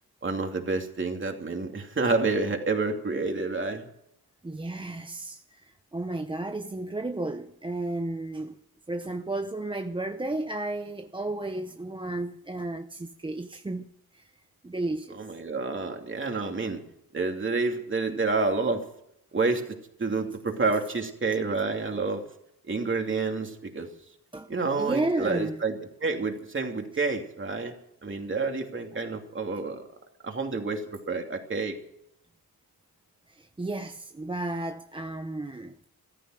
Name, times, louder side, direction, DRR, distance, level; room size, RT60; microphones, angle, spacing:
voice 1, 0.2-3.8 15.2-16.8 17.1-18.8 19.3-22.2 22.7-23.9 24.5-27.7 28.0-29.8 30.2-31.8, right 3 dB, 30° right, 2.8 m, -29 dB
voice 2, 4.4-8.6 8.9-13.8 14.1-14.3 14.6-15.2 24.3-25.6 33.3-35.9, right 2 dB, 15° right, 0.7 m, -33 dB
15.0 x 14.0 x 6.4 m
wide cardioid pair, 115°, 37 cm